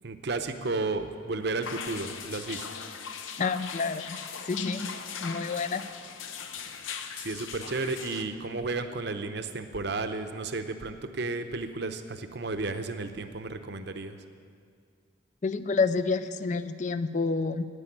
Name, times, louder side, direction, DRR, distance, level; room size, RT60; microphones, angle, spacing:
voice 1, 0.0-2.6 7.2-14.2, right 3 dB, 55° right, 8 dB, 0.8 m, -33 dB
sound 1, 1.6-8.2, left 6 dB, 75° left, 0.8 m, -39 dB
voice 2, 3.4-4.2 4.4-4.9 5.2-5.8 15.4-17.6, left 4 dB, 35° left, 13 dB, 0.4 m, -28 dB
9.9 x 9.9 x 8.6 m, 2.2 s
head